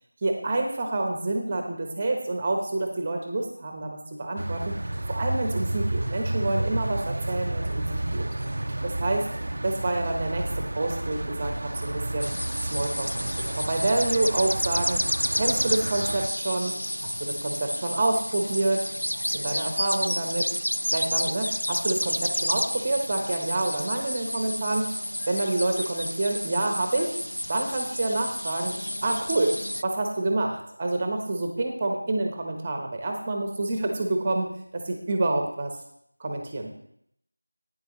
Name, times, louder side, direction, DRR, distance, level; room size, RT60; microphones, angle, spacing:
voice 1, 0.2-4.7 5.1-8.3 8.8-9.3 9.6-12.3 12.7-15.0 15.3-16.8 17.0-18.9 19.3-20.6 20.9-24.9 25.3-27.2 27.5-28.8 29.0-35.7 36.2-36.7, right 2 dB, 15° right, 3 dB, 0.9 m, -28 dB
sound 1, 4.4-16.3, right 1 dB, 45° right, 0.5 m, -31 dB
sound 2, 12.2-29.8, equal, 75° left, 0.3 m, -30 dB
11.5 x 9.4 x 3.1 m, 0.71 s
figure-of-eight pair, 170°, 0 cm